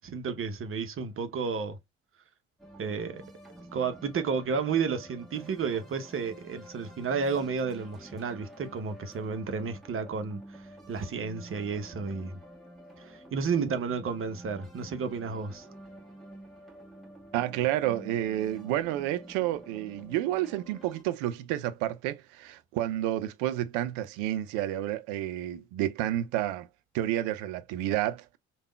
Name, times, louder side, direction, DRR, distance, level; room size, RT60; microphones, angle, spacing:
voice 1, 0.0-1.8 2.8-3.2 3.7-12.4 13.0-15.7, right 5 dB, 40° right, 0.8 m, -32 dB
sound 1, 2.6-21.0, right 1 dB, ahead, 1.4 m, -49 dB
voice 2, 17.3-26.7 26.9-28.4, right 13 dB, 75° right, 0.5 m, -30 dB
3.4 x 2.3 x 2.2 m
hypercardioid pair, 55°, 32 cm